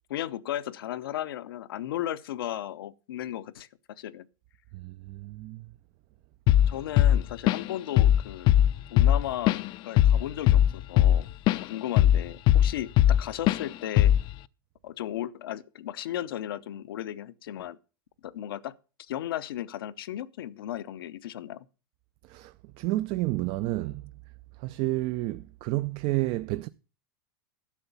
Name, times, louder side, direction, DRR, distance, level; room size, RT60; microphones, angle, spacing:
voice 1, 0.1-4.3 6.7-8.5 8.9-11.3 11.5-14.1 14.8-17.8 18.2-18.7 19.1-21.7, left 12 dB, 80° left, 0.8 m, -35 dB
voice 2, 4.7-5.7 22.3-24.1 24.6-26.7, right 18 dB, 50° right, 0.5 m, -30 dB
Drum kit / Drum, 6.5-6.7 7.0-7.7 8.0-8.2 8.5-11.6 12.0-13.2 13.5-13.6 14.0-14.3, left 12 dB, 40° left, 0.5 m, -19 dB
11.5 x 7.0 x 6.9 m
hypercardioid pair, 120°, 12 cm